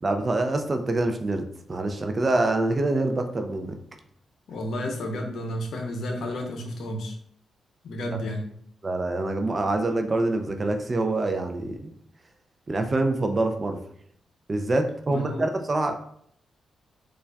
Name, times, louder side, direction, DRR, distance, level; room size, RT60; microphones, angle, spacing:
voice 1, 0.0-3.8 8.1-8.2 8.8-11.9 12.7-13.8 14.5-15.9, right 2 dB, 40° right, 6 dB, 0.4 m, -25 dB
voice 2, 4.5-7.2 7.8-8.5 15.1-15.5, left 1 dB, 70° left, 3 dB, 0.6 m, -31 dB
4.4 x 2.4 x 2.2 m, 0.66 s
hypercardioid pair, 45°, 0 cm